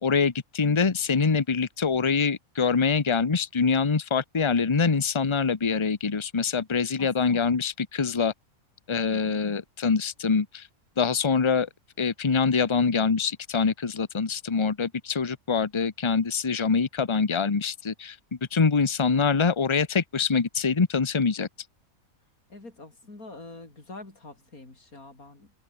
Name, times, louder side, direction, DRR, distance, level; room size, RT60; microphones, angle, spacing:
voice 1, 0.0-8.3 8.9-10.7 11.0-11.7 12.0-18.2 18.5-21.5, left 5 dB, 25° left, 0.9 m, -24 dB
voice 2, 7.0-7.3 22.5-25.5, left 2 dB, 85° left, 5.6 m, -45 dB
omnidirectional pair, 1.5 m